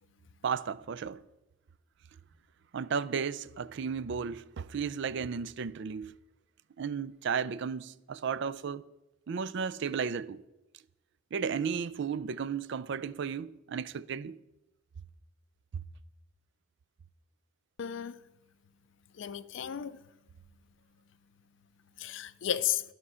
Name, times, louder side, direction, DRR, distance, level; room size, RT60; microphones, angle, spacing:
voice 1, 0.4-1.2 2.7-6.1 6.8-8.8 9.3-10.4 11.3-14.4, right 6 dB, 60° right, 0.4 m, -34 dB
voice 2, 17.8-18.2 19.2-20.0 22.0-22.8, left 10 dB, 65° left, 0.4 m, -33 dB
12.0 x 6.2 x 5.6 m
head